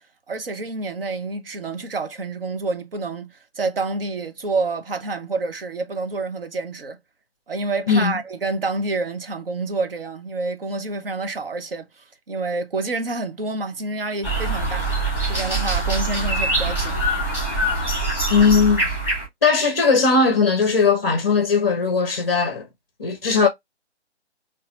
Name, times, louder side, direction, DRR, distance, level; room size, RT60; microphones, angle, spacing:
voice 1, 0.3-7.0 7.5-14.9 15.2-17.0, right 3 dB, 55° right, 0.9 m, -28 dB
sound 1, 14.2-19.3, right 2 dB, 5° right, 1.6 m, -23 dB
voice 2, 18.3-18.8 19.4-22.7 23.0-23.5, left 5 dB, 25° left, 0.6 m, -18 dB
4.1 x 2.6 x 2.4 m
figure-of-eight pair, 140°, 35 cm